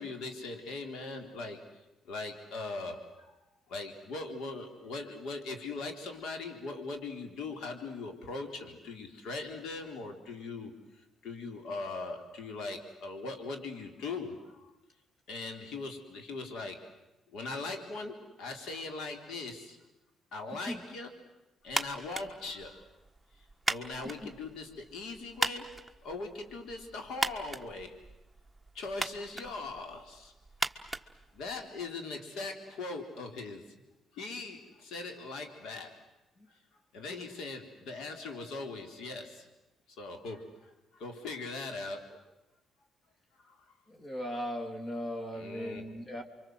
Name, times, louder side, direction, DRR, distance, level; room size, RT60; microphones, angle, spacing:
voice 1, 0.0-1.6 2.1-3.0 3.3-3.4 3.7-14.7 15.3-16.8 17.3-19.8 20.3-21.2 21.6-22.8 23.7-25.7 26.0-28.0 28.7-30.3 31.3-33.7 34.1-36.0 36.5-36.6 36.9-39.5 40.0-42.2 43.4-43.6 45.3-45.9, left 3 dB, 80° left, 6 dB, 3.9 m, -40 dB
sound 1, 21.7-31.9, right 2 dB, 5° right, 1.4 m, -39 dB
voice 2, 43.9-46.2, equal, 40° left, 4 dB, 3.6 m, -38 dB
29.0 x 24.5 x 8.0 m, 0.94 s
cardioid pair, 90°, 0 cm